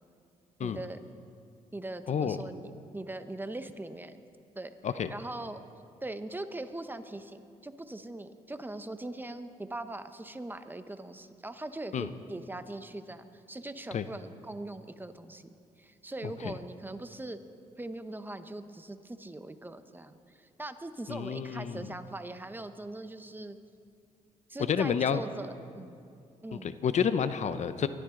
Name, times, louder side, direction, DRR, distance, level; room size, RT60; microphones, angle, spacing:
voice 1, 0.6-1.0 1.7-4.2 4.5-4.7 5.1-5.6 6.0-15.5 15.8-17.4 17.8-23.6 24.5-26.0 26.4-26.7, right 2 dB, 15° right, 10 dB, 0.9 m, -41 dB
voice 2, 2.1-2.4 4.8-5.1 11.9-12.1 13.9-14.0 16.4-16.5 21.1-21.8 24.7-25.2 26.5-27.9, left 7 dB, 55° left, 12 dB, 0.7 m, -29 dB
23.5 x 13.5 x 3.8 m, 2.4 s
supercardioid pair, 65°, 14 cm